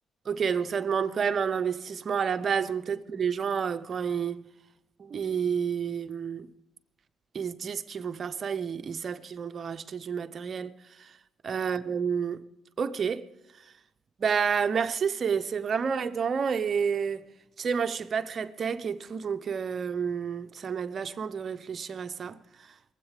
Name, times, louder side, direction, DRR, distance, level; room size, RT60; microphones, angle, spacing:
voice 1, 0.2-4.4 5.0-6.5 7.3-11.1 11.4-12.4 12.8-13.3 14.2-17.3 17.6-22.4, right 6 dB, 50° right, 0.8 m, -30 dB
22.5 x 8.2 x 5.1 m
cardioid pair, 90°, 0 cm